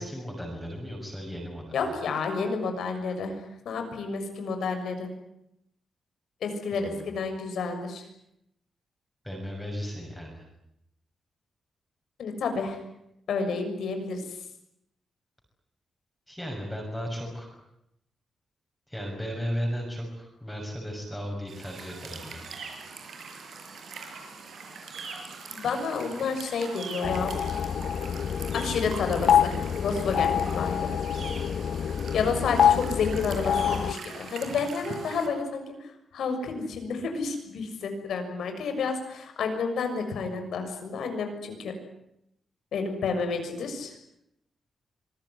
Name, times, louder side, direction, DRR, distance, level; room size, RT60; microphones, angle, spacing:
voice 1, 0.0-1.8 6.7-7.0 9.2-10.4 16.3-17.5 18.9-22.5, equal, 5° left, -1 dB, 6.4 m, -35 dB
voice 2, 1.7-5.1 6.4-8.1 12.2-12.8 13.3-14.4 25.5-27.3 28.5-30.9 32.1-41.7 42.7-43.9, left 4 dB, 85° left, 6 dB, 6.6 m, -30 dB
sound 1, 21.5-35.3, right 4 dB, 65° right, 6.4 m, -42 dB
sound 2, 27.0-33.9, left 8 dB, 60° left, 1.0 m, -26 dB
25.5 x 20.5 x 9.7 m, 0.80 s
wide cardioid pair, 150°, 0 cm